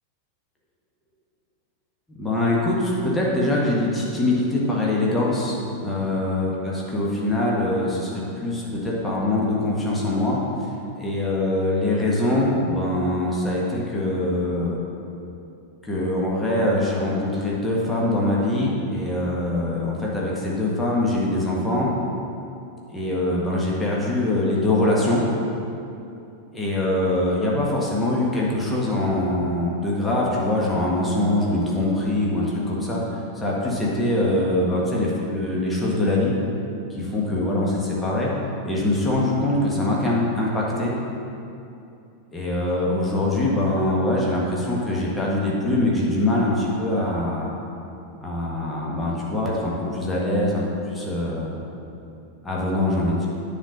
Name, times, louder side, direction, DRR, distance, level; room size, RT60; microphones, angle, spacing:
voice 1, 2.2-10.4 11.0-14.8 15.9-21.9 22.9-25.2 26.5-33.0 33.3-36.3 36.9-38.3 38.6-40.9 42.3-47.5 48.2-50.6 50.9-51.6 52.4-53.3, left 1 dB, 10° left, -5 dB, 1.7 m, -23 dB
9.9 x 4.3 x 6.6 m, 2.7 s
figure-of-eight pair, 90°, 0 cm